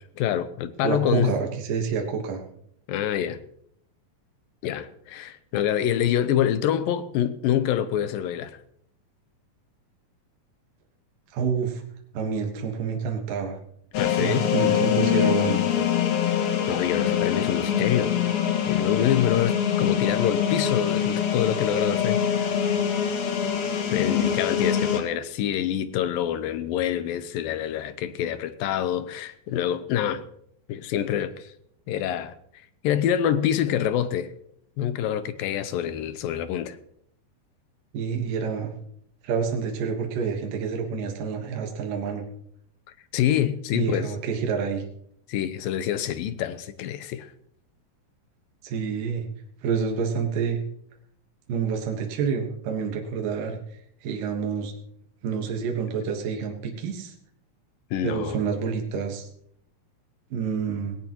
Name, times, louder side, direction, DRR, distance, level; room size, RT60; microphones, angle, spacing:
voice 1, 0.2-1.3 2.9-3.4 4.6-8.5 13.9-14.5 16.7-18.1 18.7-22.6 23.9-30.2 30.7-31.5 31.9-32.3 32.8-34.3 34.8-36.8 43.1-44.1 45.3-47.3 57.9-58.4, left 10 dB, 85° left, 2.6 m, -26 dB
voice 2, 0.8-2.4 11.3-11.8 12.1-13.6 14.2-15.6 37.9-38.7 39.2-42.2 43.7-44.8 48.6-49.3 49.6-50.6 51.5-53.6 54.0-54.7 55.2-57.1 58.0-59.3 60.3-60.9, right 6 dB, 75° right, 3.0 m, -28 dB
sound 1, 13.9-25.0, left 9 dB, 65° left, 3.1 m, -24 dB
18.5 x 17.0 x 3.0 m
omnidirectional pair, 4.0 m